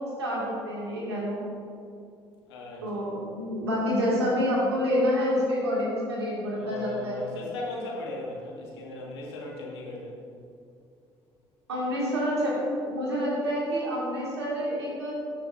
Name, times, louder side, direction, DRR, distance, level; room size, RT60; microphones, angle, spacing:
voice 1, 0.0-1.4 2.8-7.2 11.7-15.1, equal, 85° right, -5 dB, 2.0 m, -28 dB
voice 2, 2.5-3.1 6.5-10.2, left 2 dB, 80° left, -3 dB, 1.6 m, -37 dB
13.5 x 6.6 x 2.5 m, 2.4 s
figure-of-eight pair, 55°, 13 cm